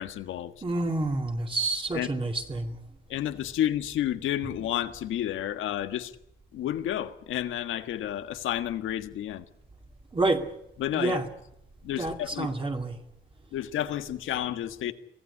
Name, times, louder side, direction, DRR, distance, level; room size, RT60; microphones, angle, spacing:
voice 1, 0.0-0.5 1.9-2.1 3.1-6.1 6.5-9.4 10.8-11.2 11.8-12.5 13.5-14.9, left 11 dB, 85° left, 1.6 m, -31 dB
voice 2, 0.6-2.8 10.1-10.4 10.9-11.3 12.0-13.0, right 2 dB, 25° right, 2.6 m, -28 dB
24.0 x 15.5 x 9.9 m
cardioid pair, 90°, 20 cm